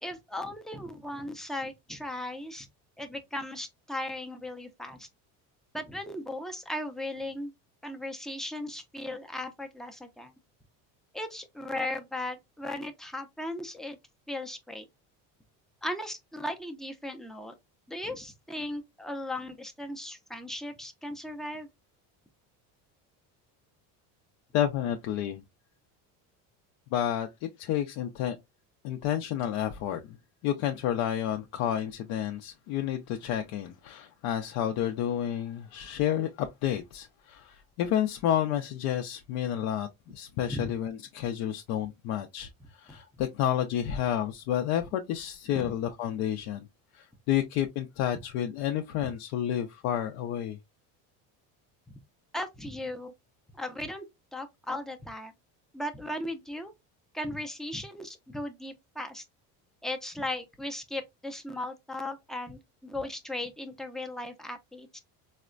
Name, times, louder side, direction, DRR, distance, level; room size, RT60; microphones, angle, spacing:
voice 1, 0.0-2.7 3.0-5.1 5.7-7.5 7.8-10.3 11.1-14.0 14.3-14.9 15.8-17.5 17.9-21.7 40.5-40.7 45.6-45.7 52.3-53.1 53.6-54.1 54.3-55.3 55.7-56.7 57.1-59.2 59.8-65.0, left 1 dB, ahead, 0.4 m, -37 dB
voice 2, 24.5-25.4 26.9-27.3 27.6-28.4 28.8-30.0 30.4-42.5 42.8-46.7 46.9-50.6, left 10 dB, 75° left, 0.6 m, -30 dB
4.1 x 2.1 x 2.4 m
cardioid pair, 125°, 38 cm